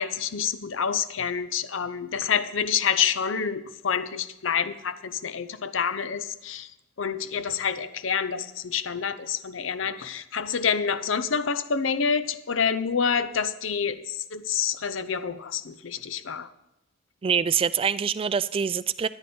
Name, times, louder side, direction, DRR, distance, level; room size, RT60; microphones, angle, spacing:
voice 1, 0.0-6.7 7.0-16.5, left 6 dB, 80° left, 13 dB, 0.7 m, -27 dB
voice 2, 17.2-19.1, right 7 dB, 30° right, 17 dB, 0.3 m, -25 dB
13.5 x 9.9 x 4.4 m, 0.86 s
head